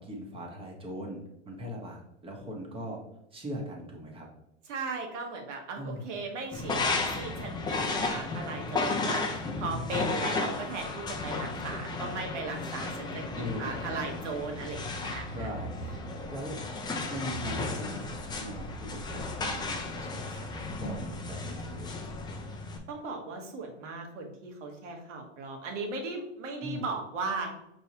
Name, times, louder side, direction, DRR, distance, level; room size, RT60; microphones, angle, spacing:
voice 1, 0.0-3.0 3.3-4.3 5.8-6.1 13.3-14.0 15.3-16.0 16.3-16.6 17.1-21.9 26.6-26.9, equal, 15° right, -1 dB, 1.2 m, -40 dB
voice 2, 4.7-15.5 22.9-27.6, right 3 dB, 80° right, 2 dB, 1.3 m, -37 dB
sound 1, 6.5-22.8, left 3 dB, 10° left, 0.5 m, -34 dB
5.4 x 3.1 x 2.8 m, 0.80 s
hypercardioid pair, 120°, 36 cm